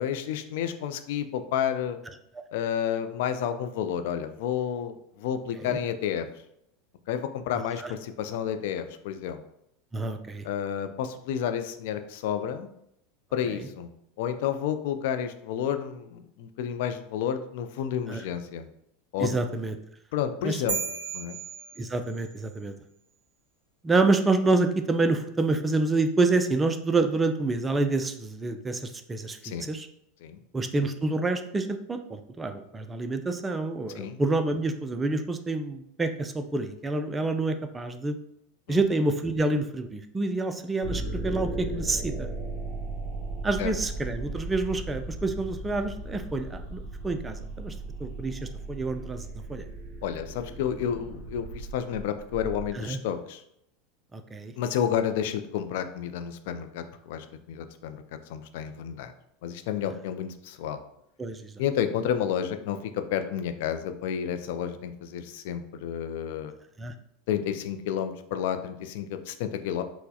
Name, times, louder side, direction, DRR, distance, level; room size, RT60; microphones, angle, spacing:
voice 1, 0.0-2.0 2.5-6.3 7.1-9.4 10.4-12.7 13.3-13.9 14.2-18.7 19.1-19.4 20.1-20.8 21.1-21.4 29.4-29.7 30.2-30.4 34.0-34.2 38.7-38.8 43.6-43.7 50.0-53.4 54.6-58.0 58.3-59.1 59.4-60.8 61.6-66.5 67.3-69.8, left 9 dB, 70° left, 9 dB, 0.3 m, -30 dB
voice 2, 9.9-10.5 13.6-13.7 18.1-18.2 19.2-19.8 20.4-20.6 21.8-22.7 23.8-29.9 30.5-38.2 38.7-42.3 43.4-47.7 48.0-49.7 52.7-53.0 54.1-54.5 61.2-61.5 66.8-66.9, right 3 dB, 15° right, 7 dB, 0.3 m, -28 dB
sound 1, 20.7-22.4, right 6 dB, 80° right, 0.6 m, -34 dB
sound 2, 40.8-52.7, right 2 dB, 45° right, 0.8 m, -36 dB
4.4 x 2.1 x 2.7 m, 0.77 s
hypercardioid pair, 100°, 0 cm